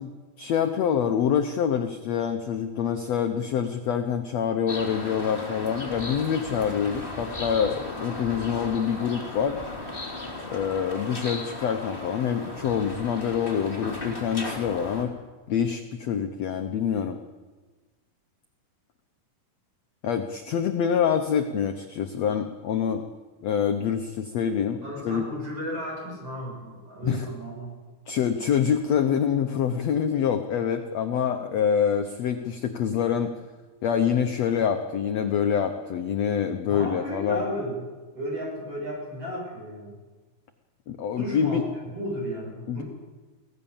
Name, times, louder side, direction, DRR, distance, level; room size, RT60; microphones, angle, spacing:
voice 1, 0.0-9.6 10.5-15.1 15.5-17.2 20.0-23.0 23.4-25.3 27.0-27.3 28.1-33.3 33.8-37.4 40.9-41.6 42.7-42.8, left 8 dB, 75° left, 6 dB, 1.6 m, -26 dB
sound 1, 4.7-15.0, left 2 dB, 15° left, 2.8 m, -36 dB
voice 2, 24.8-27.7 36.7-37.9 38.1-40.0 41.2-42.8, equal, 40° right, -1 dB, 8.1 m, -34 dB
24.0 x 17.5 x 7.2 m, 1.3 s
omnidirectional pair, 4.2 m